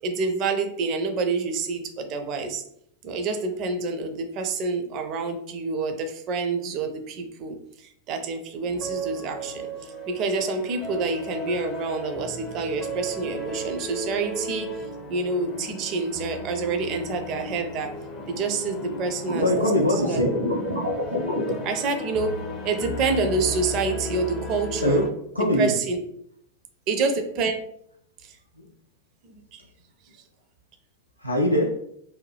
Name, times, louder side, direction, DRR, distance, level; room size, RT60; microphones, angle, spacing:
voice 1, 0.0-2.6 3.0-14.8 15.1-18.0 18.3-19.5 19.9-20.2 21.6-25.0 25.6-26.0 26.9-27.5 28.2-28.4 29.2-29.6, right 4 dB, 40° right, 6 dB, 0.4 m, -28 dB
sound 1, 8.7-25.1, equal, 30° left, 0.5 m, -35 dB
sound 2, 19.3-21.5, left 1 dB, 85° right, 0.8 m, -26 dB
voice 2, 19.4-20.3 24.8-25.1 25.3-25.7 28.6-28.7 31.2-31.7, equal, 85° left, -1 dB, 0.4 m, -22 dB
2.6 x 2.2 x 3.2 m, 0.71 s
figure-of-eight pair, 90°, 0 cm